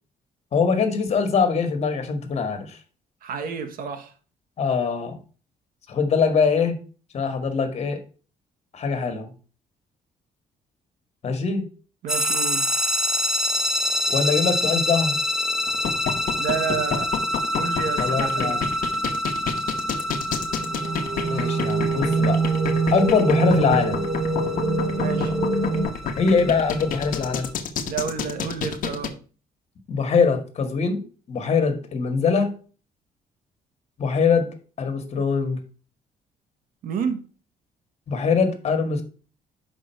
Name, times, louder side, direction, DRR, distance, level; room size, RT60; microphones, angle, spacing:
voice 1, 0.5-2.8 4.6-5.2 5.9-6.8 7.1-8.0 8.7-9.3 11.2-11.7 14.1-15.2 18.0-18.6 21.2-22.4 22.9-24.0 26.2-27.5 29.9-32.5 34.0-34.5 34.8-35.6 38.1-39.0, left 5 dB, 45° left, 1.7 m, -22 dB
voice 2, 3.2-4.1 12.0-12.7 16.4-17.1 17.5-18.6 25.0-25.3 27.8-29.1 36.8-37.2, right 6 dB, 70° right, 1.4 m, -30 dB
sound 1, 12.1-27.5, left 1 dB, 5° right, 1.0 m, -27 dB
sound 2, 15.7-29.1, left 7 dB, 65° left, 1.1 m, -29 dB
sound 3, 20.4-25.8, right 3 dB, 25° right, 3.4 m, -24 dB
6.4 x 5.1 x 4.4 m
cardioid pair, 120°, 15 cm